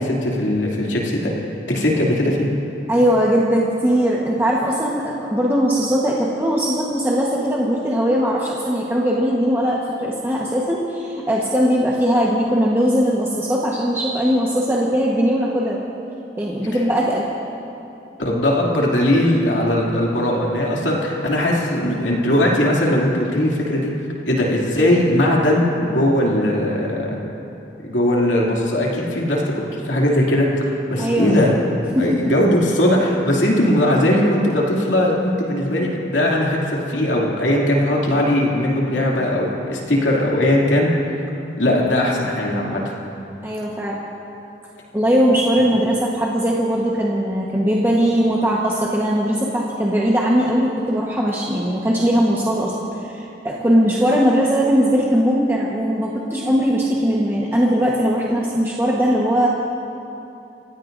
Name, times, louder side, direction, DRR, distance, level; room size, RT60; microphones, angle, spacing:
voice 1, 0.0-1.3 1.7-2.5 18.2-23.9 24.3-27.2 27.8-30.5 30.9-31.5 32.0-40.9 41.6-42.8, left 1 dB, 90° left, -3 dB, 2.6 m, -19 dB
voice 2, 2.9-15.8 16.4-17.3 31.0-31.3 31.9-32.3 43.4-44.0 44.9-52.7 53.0-59.5, equal, 15° right, -5 dB, 1.2 m, -19 dB
28.5 x 16.0 x 2.6 m, 2.9 s
head